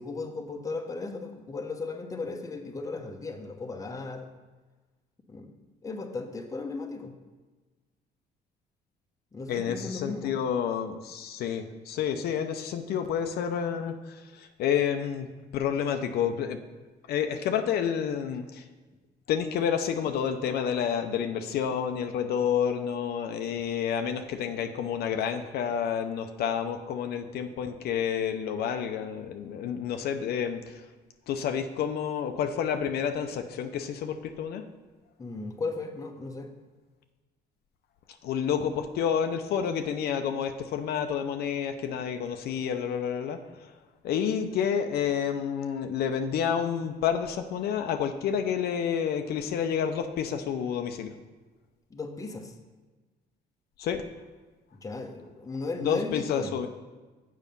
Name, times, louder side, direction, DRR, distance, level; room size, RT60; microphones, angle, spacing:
voice 1, 0.0-4.3 5.3-5.5 5.8-7.1 9.3-10.4 35.2-36.5 51.9-52.5 54.8-56.5, left 3 dB, 20° left, 4 dB, 0.8 m, -36 dB
voice 2, 9.5-13.9 14.4-15.3 15.5-16.6 17.1-18.6 19.3-30.8 31.3-34.6 38.2-43.4 44.0-51.1 53.8-54.0 55.8-56.7, left 8 dB, 70° left, 6 dB, 0.6 m, -29 dB
7.3 x 5.5 x 5.3 m, 1.3 s
cardioid pair, 110°, 17 cm